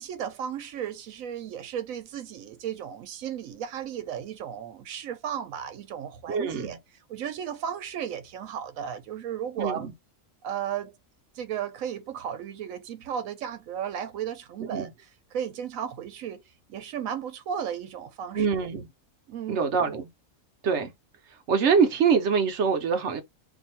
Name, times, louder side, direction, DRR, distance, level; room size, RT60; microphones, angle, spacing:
voice 1, 0.0-6.8 7.1-9.9 10.4-11.0 11.4-14.9 15.3-16.4 16.7-18.5 19.3-19.6, right 9 dB, 90° right, 1.1 m, -34 dB
voice 2, 6.3-6.8 9.6-9.9 14.7-14.9 18.3-18.9 19.5-20.1 20.6-20.9 21.5-23.2, right 6 dB, 65° right, 0.9 m, -24 dB
2.6 x 2.4 x 4.2 m
omnidirectional pair, 1.4 m